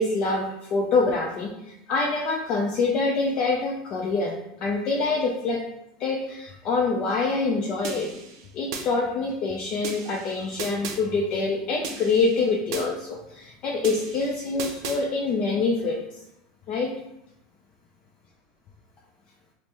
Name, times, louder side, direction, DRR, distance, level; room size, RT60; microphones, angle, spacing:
voice 1, 0.0-5.6 6.0-8.1 8.5-16.2 16.7-16.9, left 3 dB, 35° left, -1 dB, 0.4 m, -25 dB
sound 1, 7.8-8.9 9.8-11.0 11.8-12.9 13.8-15.0, right 5 dB, 65° right, 0.6 m, -36 dB
5.1 x 2.0 x 3.1 m, 0.85 s
supercardioid pair, 165°, 3 cm